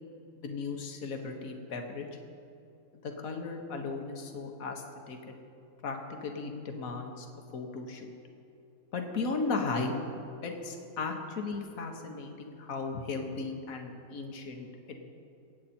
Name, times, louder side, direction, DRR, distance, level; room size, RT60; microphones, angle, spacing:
voice 1, 0.4-2.1 3.0-5.3 5.8-7.3 7.5-8.1 8.9-10.0 10.4-15.0, left 4 dB, 65° left, 3 dB, 1.7 m, -36 dB
24.5 x 8.6 x 4.4 m, 2.7 s
omnidirectional pair, 1.6 m